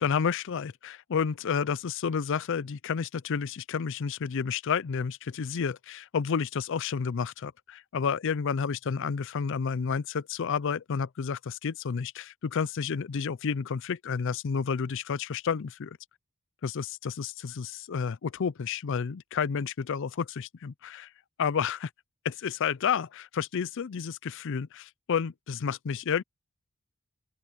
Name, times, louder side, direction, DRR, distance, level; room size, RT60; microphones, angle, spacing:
voice 1, 0.0-16.0 16.6-21.1 21.4-21.9 22.2-26.2, left 6 dB, 60° left, 0.5 m, -30 dB
open air
head